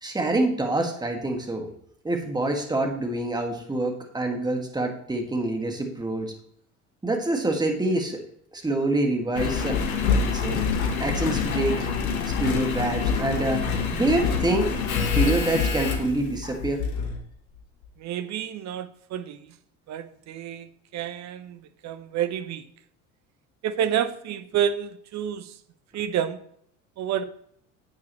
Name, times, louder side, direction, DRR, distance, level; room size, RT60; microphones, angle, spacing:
voice 1, 0.0-1.7 2.0-6.3 7.0-8.2 8.5-9.8 10.2-10.6 11.0-11.8 12.4-13.7 13.9-14.8 15.1-16.8, right 2 dB, 10° right, 3 dB, 2.0 m, -26 dB
Engine, 9.3-17.2 17.8-17.9, left 5 dB, 75° left, 1.4 m, -26 dB
voice 2, 18.0-19.6 19.9-22.6 23.6-25.6 25.9-26.4 27.0-27.2, right 9 dB, 40° right, 12 dB, 0.9 m, -29 dB
10.5 x 8.5 x 3.1 m, 0.68 s
figure-of-eight pair, 65°, 43 cm